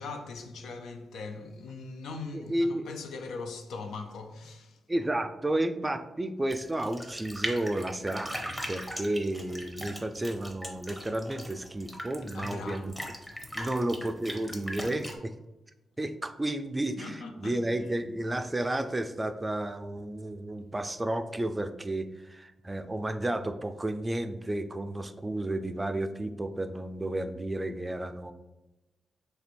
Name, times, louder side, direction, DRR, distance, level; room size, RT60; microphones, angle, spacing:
voice 1, 0.0-4.8 12.3-12.9 13.3-13.8 17.0-17.6, left 4 dB, 80° left, 0.4 m, -41 dB
voice 2, 2.3-2.9 4.9-12.9 13.5-15.3 16.0-28.3, right 1 dB, 20° right, 0.4 m, -32 dB
sound 1, 6.5-15.1, equal, 5° left, 0.8 m, -39 dB
3.2 x 2.5 x 4.4 m
supercardioid pair, 55°, 0 cm